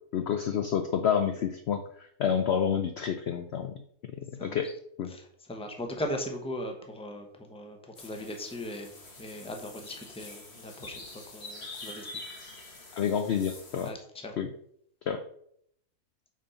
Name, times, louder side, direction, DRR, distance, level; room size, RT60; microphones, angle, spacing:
voice 1, 0.1-3.7 4.4-4.7 5.0-5.1 13.0-13.9 14.4-14.5 15.1-15.2, left 8 dB, 65° left, 7 dB, 0.7 m, -29 dB
voice 2, 5.1-8.9 9.2-12.1 13.8-14.0 14.2-14.3, left 1 dB, 5° left, 4 dB, 0.8 m, -38 dB
sound 1, 8.0-13.9, left 2 dB, 45° left, 1.7 m, -45 dB
6.1 x 4.3 x 5.5 m, 0.68 s
omnidirectional pair, 1.6 m